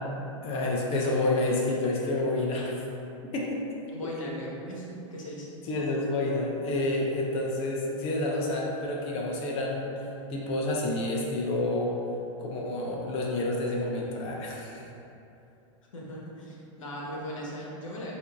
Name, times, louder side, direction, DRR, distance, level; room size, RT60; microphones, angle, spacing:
voice 1, 0.4-2.8 3.3-3.6 4.0-4.1 5.7-9.9 10.3-12.0 12.4-14.8, left 2 dB, 35° left, -2 dB, 0.7 m, -29 dB
voice 2, 3.9-5.5 15.9-18.1, equal, 85° left, -4 dB, 1.0 m, -38 dB
7.9 x 2.7 x 2.3 m, 2.8 s
hypercardioid pair, 115°, 16 cm